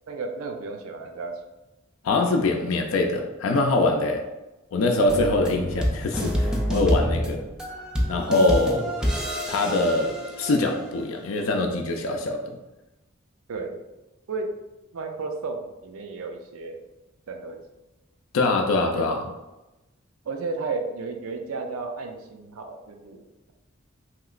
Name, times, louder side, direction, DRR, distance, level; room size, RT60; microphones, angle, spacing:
voice 1, 0.1-1.4 13.5-13.8 14.3-14.5 14.9-16.8 17.3-17.6 18.8-19.0 20.2-23.5, right 3 dB, 85° right, 4 dB, 0.4 m, -33 dB
voice 2, 2.0-4.3 4.7-7.4 8.1-8.9 9.5-12.6 18.3-19.2, left 2 dB, 70° left, 3 dB, 0.4 m, -23 dB
sound 1, 5.1-10.9, equal, 5° right, 0.3 m, -27 dB
3.0 x 2.9 x 2.4 m, 1.0 s
head